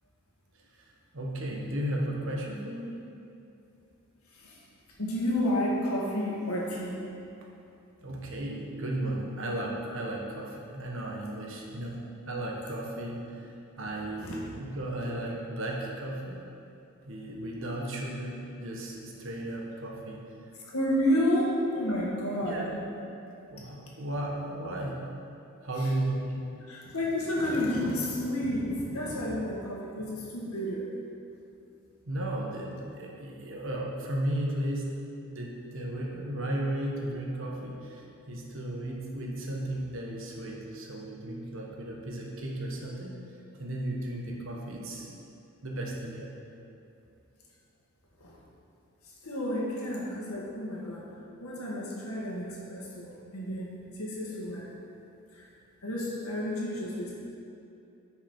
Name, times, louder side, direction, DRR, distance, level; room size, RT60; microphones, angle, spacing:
voice 1, 0.8-2.9 8.0-12.0 12.3-16.4 17.0-20.2 21.3-21.4 22.4-22.7 23.5-25.0 25.6-26.5 32.1-43.2 43.6-45.1 45.6-46.3, right 1 dB, 60° right, -1 dB, 1.3 m, -35 dB
voice 2, 5.0-7.0 14.2-14.4 20.7-22.7 25.8-25.9 26.7-30.9 48.2-48.4 49.2-51.0 51.4-54.7 55.3-55.4 55.8-57.1, left 1 dB, 85° left, -4 dB, 1.9 m, -31 dB
10.0 x 5.8 x 4.4 m, 2.7 s
head